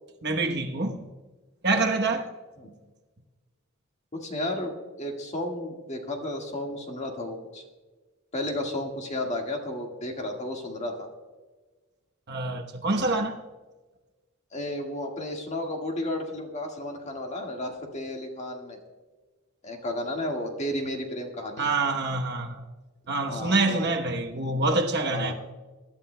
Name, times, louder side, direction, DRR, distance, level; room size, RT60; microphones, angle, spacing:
voice 1, 0.2-1.1 1.6-2.3 12.3-13.4 21.6-22.6 23.1-25.3, right 3 dB, 50° right, 1.0 m, -26 dB
voice 2, 4.1-7.6 8.3-11.1 14.5-18.8 19.6-21.7 23.2-23.9 25.1-25.3, left 1 dB, 30° left, 1.8 m, -33 dB
24.0 x 11.5 x 2.2 m
head